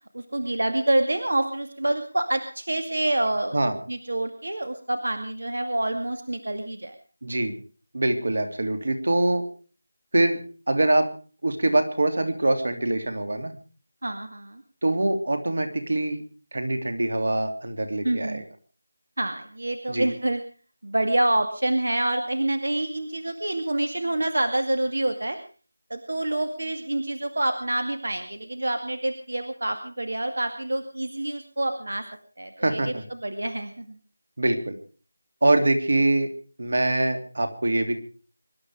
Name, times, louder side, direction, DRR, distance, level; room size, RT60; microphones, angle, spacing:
voice 1, 0.1-3.6 3.9-7.0 14.0-14.6 18.0-18.4 19.2-20.4 20.8-25.4 25.9-32.1 32.4-32.9 33.2-34.0, right 1 dB, 75° right, 7 dB, 2.2 m, -27 dB
voice 2, 7.2-7.6 7.9-9.5 10.1-10.4 10.7-11.1 11.4-13.6 14.8-16.2 16.5-18.4 19.9-20.1 32.6-33.0 34.4-34.7 35.4-36.3 36.6-38.0, right 2 dB, 55° right, 7 dB, 3.0 m, -24 dB
24.5 x 12.0 x 4.9 m, 0.39 s
figure-of-eight pair, 175°, 0 cm